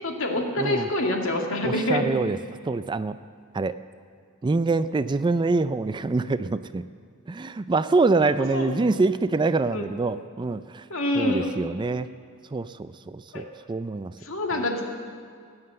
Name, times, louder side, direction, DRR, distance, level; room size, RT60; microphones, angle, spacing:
voice 1, 0.0-2.1 8.2-8.7 9.7-9.9 10.9-11.5 13.3-13.4 14.2-14.9, left 1 dB, 70° left, 2 dB, 2.1 m, -26 dB
voice 2, 1.6-2.4 2.6-3.2 3.5-3.7 4.4-6.8 7.3-10.8 11.2-12.1 12.5-14.1, right 3 dB, 20° right, 13 dB, 0.3 m, -25 dB
19.0 x 9.7 x 7.7 m, 2.2 s
head